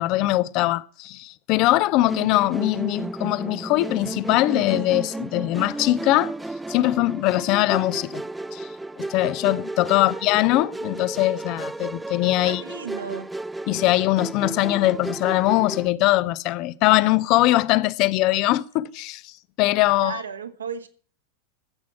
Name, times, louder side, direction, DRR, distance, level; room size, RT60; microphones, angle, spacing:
voice 1, 0.0-6.3 6.7-8.2 8.5-8.7 9.0-12.6 13.7-19.3 19.6-20.2, left 17 dB, 40° left, 0.6 m, -21 dB
Musical instrument, 2.1-15.9, right 2 dB, 5° right, 0.5 m, -33 dB
voice 2, 9.9-10.2 12.4-13.3 20.0-20.9, right 6 dB, 70° right, 1.6 m, -35 dB
14.5 x 8.3 x 5.9 m
figure-of-eight pair, 90°, 0 cm